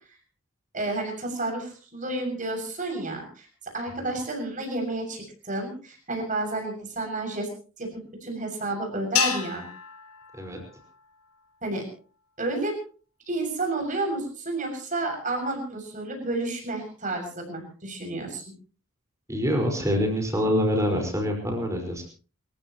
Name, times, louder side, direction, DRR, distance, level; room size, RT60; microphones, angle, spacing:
voice 1, 0.7-3.5 3.7-7.5 7.8-9.7 11.6-11.8 12.4-12.8 13.3-18.4, right 2 dB, 35° right, 3 dB, 7.0 m, -31 dB
sound 1, 9.2-11.6, left 9 dB, 90° left, 4.0 m, -31 dB
voice 2, 19.3-22.0, equal, 15° right, 2 dB, 5.2 m, -25 dB
28.5 x 15.5 x 3.1 m, 0.38 s
head